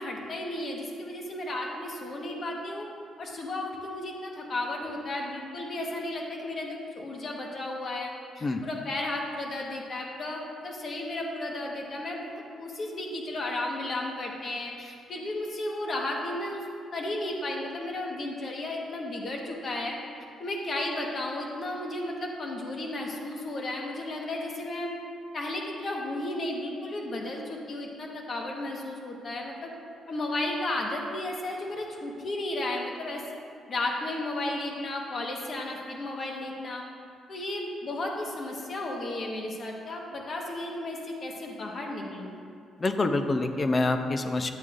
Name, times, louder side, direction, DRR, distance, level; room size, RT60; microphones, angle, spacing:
voice 1, 0.0-2.9 3.2-12.3 12.6-16.7 16.9-20.0 20.4-24.9 25.3-29.7 30.1-33.2 33.7-36.9 37.3-42.4, left 1 dB, 50° left, 0 dB, 1.3 m, -34 dB
voice 2, 42.8-44.5, left 2 dB, 35° left, 7 dB, 0.6 m, -26 dB
10.5 x 8.0 x 2.6 m, 2.4 s
cardioid pair, 90°, 0 cm